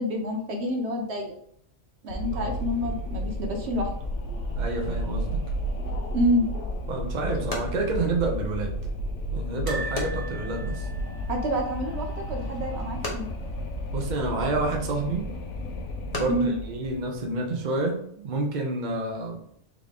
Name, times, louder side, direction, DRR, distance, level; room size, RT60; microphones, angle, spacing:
voice 1, 0.0-1.3 2.0-3.9 6.1-6.5 11.3-13.2 16.2-16.6, equal, 70° right, 2 dB, 1.1 m, -27 dB
Wind, 2.1-17.4, equal, 90° left, 1.0 m, -32 dB
voice 2, 4.5-5.4 6.9-8.8 9.3-10.9 13.9-15.3 16.1-19.4, right 2 dB, 45° right, 1 dB, 0.9 m, -29 dB
sound 1, 6.4-17.8, left 2 dB, 35° left, 1.0 m, -42 dB
sound 2, 9.7-12.7 13.0-13.2 13.4-13.5 14.8-15.3 15.8-15.9, right 3 dB, 20° right, 1.1 m, -40 dB
3.7 x 3.6 x 3.6 m, 0.66 s
omnidirectional pair, 1.2 m